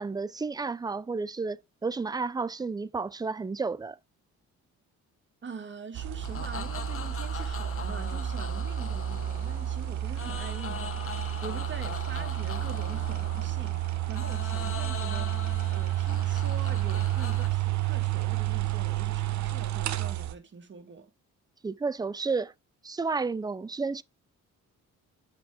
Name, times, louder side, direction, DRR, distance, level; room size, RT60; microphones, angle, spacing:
voice 1, 0.0-4.0 21.6-22.5 22.8-24.0, right 4 dB, 15° right, 0.5 m, -31 dB
voice 2, 5.4-21.1, right 5 dB, 40° right, 2.3 m, -44 dB
sound 1, 5.9-20.4, right 13 dB, 65° right, 1.0 m, -30 dB
sound 2, 6.2-17.5, left 7 dB, 45° left, 1.3 m, -41 dB
8.2 x 5.3 x 3.6 m
cardioid pair, 90°, 30 cm